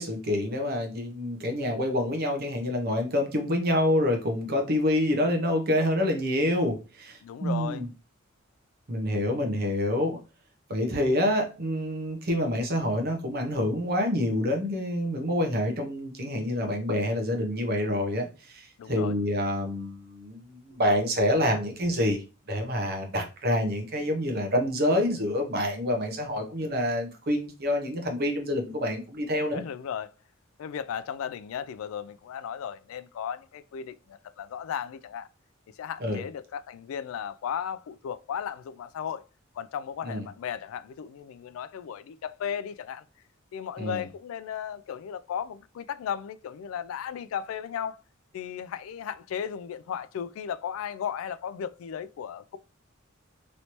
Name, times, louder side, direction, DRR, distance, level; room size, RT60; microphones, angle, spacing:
voice 1, 0.0-7.9 8.9-10.2 10.7-29.6 36.0-36.2 40.0-40.2 43.8-44.0, left 1 dB, 50° right, 0.9 m, -27 dB
voice 2, 7.2-7.8 18.8-19.1 29.5-30.1 30.6-35.3 35.8-39.2 39.6-43.0 43.5-48.0 48.3-52.6, left 8 dB, 75° left, 0.3 m, -35 dB
3.1 x 2.8 x 3.0 m
head